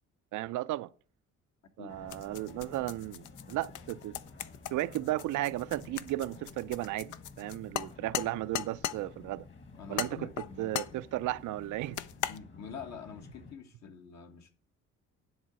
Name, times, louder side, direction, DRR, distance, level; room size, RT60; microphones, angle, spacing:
voice 1, 0.3-0.9 1.8-4.2 4.7-9.5 9.9-10.3 10.6-12.0, right 16 dB, 80° right, 0.5 m, -34 dB
voice 2, 1.8-2.2 9.7-10.9 12.3-14.5, left 6 dB, 65° left, 1.6 m, -46 dB
sound 1, 1.9-13.5, left 4 dB, 40° left, 1.7 m, -52 dB
sound 2, 2.1-9.0 10.0-11.0 12.0-12.4, left 11 dB, 80° left, 0.6 m, -38 dB
10.5 x 3.9 x 7.4 m
cardioid pair, 90°, 30 cm